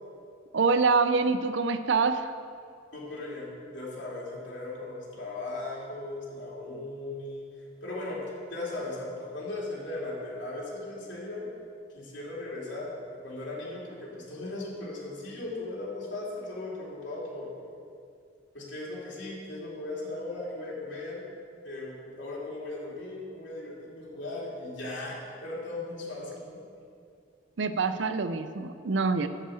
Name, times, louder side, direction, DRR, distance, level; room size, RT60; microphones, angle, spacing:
voice 1, 0.5-2.3 27.6-29.3, right 4 dB, 70° right, 10 dB, 0.6 m, -25 dB
voice 2, 2.9-7.5 7.8-8.2 8.5-11.5 11.9-17.5 18.5-21.2 21.6-26.6, left 2 dB, 70° left, -5 dB, 2.9 m, -37 dB
11.0 x 5.5 x 7.8 m, 2.4 s
head